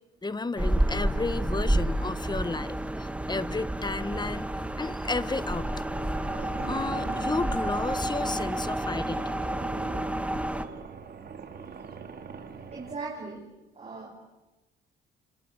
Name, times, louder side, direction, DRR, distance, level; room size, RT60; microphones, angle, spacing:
voice 1, 0.2-6.0 6.7-9.3, left 3 dB, 20° left, 14 dB, 1.5 m, -33 dB
sound 1, 0.6-10.6, right 1 dB, 5° right, 2.2 m, -30 dB
sound 2, 5.2-12.9, right 6 dB, 55° right, 4.0 m, -42 dB
voice 2, 12.7-13.5 13.8-14.2, right 3 dB, 30° right, -1 dB, 6.3 m, -38 dB
30.0 x 26.5 x 6.5 m, 1.1 s
cardioid pair, 90°, 20 cm